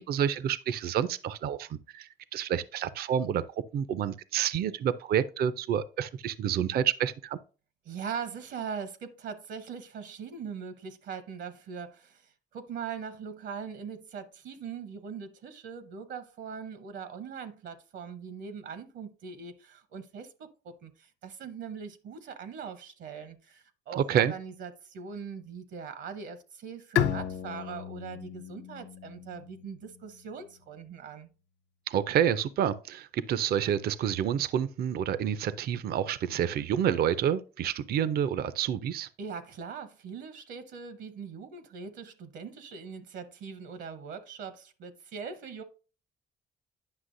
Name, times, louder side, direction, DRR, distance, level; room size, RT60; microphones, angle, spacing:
voice 1, 0.0-3.4 3.7-7.4 24.0-24.3 31.9-39.1, right 9 dB, 55° right, 0.4 m, -28 dB
voice 2, 7.8-31.3 39.2-45.6, right 6 dB, 70° right, 0.8 m, -41 dB
Bowed string instrument, 27.0-30.5, left 9 dB, 75° left, 0.6 m, -34 dB
9.7 x 5.8 x 2.6 m
cardioid pair, 105°, 19 cm